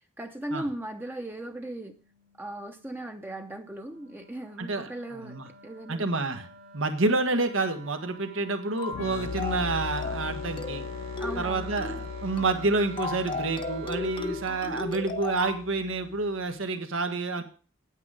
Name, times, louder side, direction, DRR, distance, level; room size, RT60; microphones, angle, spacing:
voice 1, 0.2-2.0 2.4-5.4 5.6-6.0 11.2-11.7, right 1 dB, 10° right, 5 dB, 0.7 m, -37 dB
Wind instrument woodwind instrument, 1.8-14.7, right 5 dB, 70° right, 2.9 m, -48 dB
voice 2, 4.6-5.5 5.9-6.5 6.7-10.8 11.4-17.4, right 3 dB, 85° right, 6 dB, 1.5 m, -29 dB
sound 1, 8.8-9.0 9.4-9.7 10.0-10.3 10.6-10.9 11.2-11.5 11.8-12.0 12.4-12.6 13.0-15.6, left 3 dB, 25° left, 0.8 m, -35 dB
sound 2, 8.9-16.4, left 5 dB, 90° left, 0.5 m, -39 dB
9.2 x 8.9 x 5.1 m, 0.37 s
head